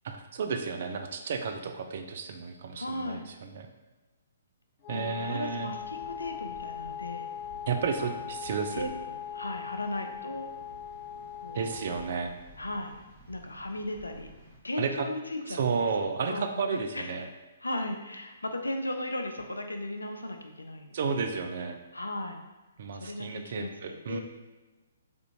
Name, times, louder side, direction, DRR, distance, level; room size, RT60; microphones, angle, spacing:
voice 1, 0.0-3.7 4.9-5.7 7.7-8.9 11.5-12.3 14.8-15.1 15.5-17.3 20.9-21.8 22.8-24.2, right 5 dB, 55° right, 6 dB, 0.4 m, -32 dB
voice 2, 2.7-3.3 4.9-7.3 8.0-8.1 8.7-10.5 11.4-11.7 12.6-12.9 13.3-14.3 14.6-15.6 16.0-16.5 16.9-17.1 17.6-21.2 21.9-22.4 23.0-23.7 24.1-24.2, left 1 dB, 90° left, 5 dB, 0.4 m, -36 dB
Wind instrument woodwind instrument, 4.8-12.2, left 8 dB, 45° left, 0.9 m, -40 dB
sound 1, 5.1-14.6, right 2 dB, 30° right, 1.0 m, -54 dB
3.4 x 2.5 x 2.8 m, 1.2 s
figure-of-eight pair, 130°, 0 cm